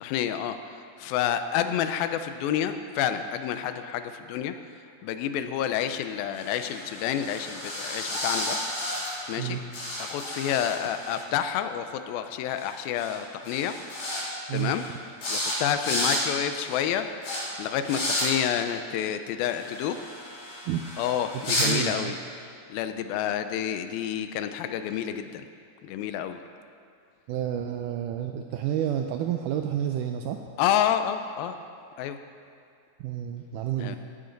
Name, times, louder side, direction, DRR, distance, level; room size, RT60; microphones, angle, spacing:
voice 1, 0.0-0.6 1.0-4.5 5.0-8.6 9.3-9.6 10.0-13.8 14.5-14.8 15.3-17.1 17.6-20.0 21.0-22.2 22.7-25.5 25.8-26.4 30.6-31.5 32.0-32.2 33.8-34.0, left 10 dB, 85° left, 9 dB, 2.4 m, -29 dB
sound 1, 6.3-9.5 9.7-11.2 12.6-12.7 13.0-13.2 13.5-14.2 14.5-14.9 15.2-15.5 15.8-16.2 16.6-16.8 17.2-17.4 17.8-18.3 19.4-21.7, left 1 dB, 60° left, 4.7 m, -32 dB
voice 2, 21.3-22.2 27.3-30.4 33.0-34.0, right 10 dB, 85° right, 5 dB, 1.8 m, -30 dB
16.5 x 9.8 x 3.9 m, 2.4 s
omnidirectional pair, 4.1 m